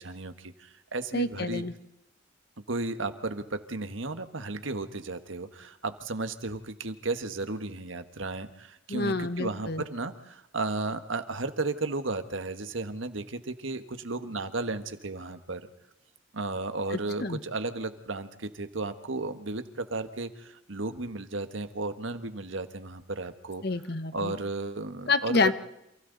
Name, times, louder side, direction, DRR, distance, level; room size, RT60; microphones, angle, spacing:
voice 1, 0.0-1.6 2.7-15.7 16.3-23.6 24.1-25.5, right 3 dB, 75° right, 9 dB, 1.5 m, -34 dB
voice 2, 1.1-1.7 8.9-9.8 16.9-17.4 23.6-24.3 25.1-25.5, left 3 dB, 55° left, 11 dB, 1.1 m, -28 dB
29.5 x 27.5 x 4.1 m, 0.86 s
head